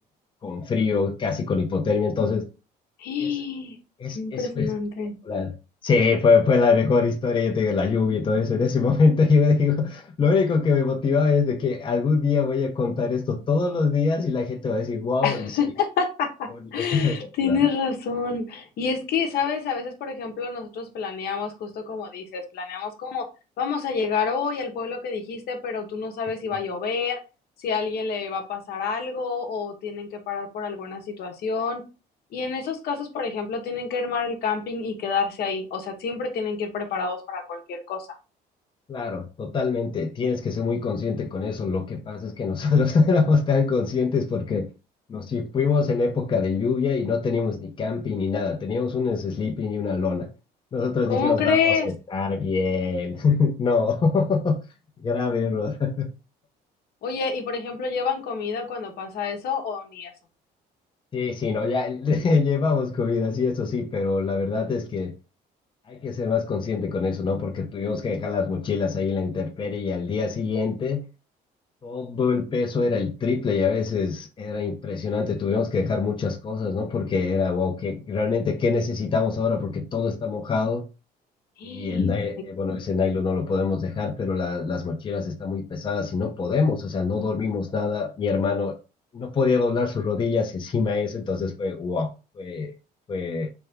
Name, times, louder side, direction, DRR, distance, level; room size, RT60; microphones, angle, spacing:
voice 1, 0.4-2.4 3.2-3.3 4.0-4.7 5.2-5.5 5.8-15.6 16.9-17.6 38.9-44.7 45.1-50.3 50.7-54.6 55.0-56.1 61.1-65.1 65.9-71.1 71.8-80.8 81.6-88.7 89.1-92.1 92.4-92.7 93.1-93.5, left 4 dB, 30° left, 0.7 m, -24 dB
voice 2, 3.0-3.8 4.1-5.2 15.2-23.3 23.6-27.2 27.6-31.8 32.3-38.1 51.1-51.9 57.0-60.1 81.6-82.1, left 5 dB, 70° left, 1.0 m, -28 dB
3.4 x 2.7 x 3.4 m
cardioid pair, 110°, 17 cm